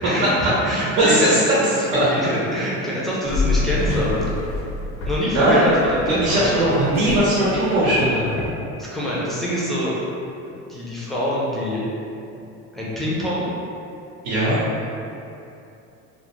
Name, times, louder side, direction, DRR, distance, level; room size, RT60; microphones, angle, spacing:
voice 1, 0.0-1.6 1.9-4.3 5.0-6.7 8.8-9.9 10.5-11.8 12.7-13.5, left 1 dB, ahead, -8 dB, 0.4 m, -25 dB
voice 2, 0.7-1.4 1.9-2.1 5.3-5.6 6.0-8.3 14.2-14.6, right 1 dB, 80° right, -9 dB, 0.8 m, -19 dB
sound 1, 3.2-8.5, left 2 dB, 90° left, 0.6 m, -27 dB
2.3 x 2.1 x 2.9 m, 2.7 s
cardioid pair, 130°, 31 cm